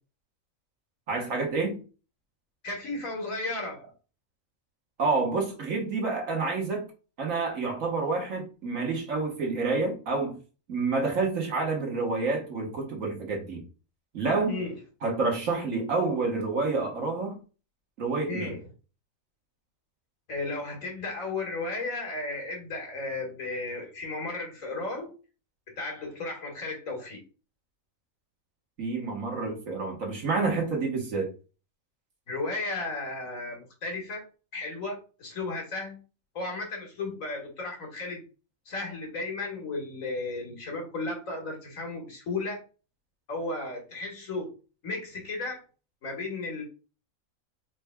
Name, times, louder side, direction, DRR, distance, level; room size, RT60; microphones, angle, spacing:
voice 1, 1.1-1.8 5.0-6.9 7.2-10.4 10.7-13.6 14.1-14.6 15.0-17.4 18.0-18.5 28.8-31.3, right 3 dB, 75° right, 1.6 m, -28 dB
voice 2, 2.6-3.9 14.5-14.8 18.3-18.6 20.3-25.1 25.8-27.2 32.3-34.3 34.5-36.0 36.4-38.2 38.7-42.6 43.3-44.5 44.8-45.7 46.0-46.6, left 3 dB, 80° left, 2.0 m, -34 dB
4.9 x 4.1 x 2.2 m
omnidirectional pair, 1.4 m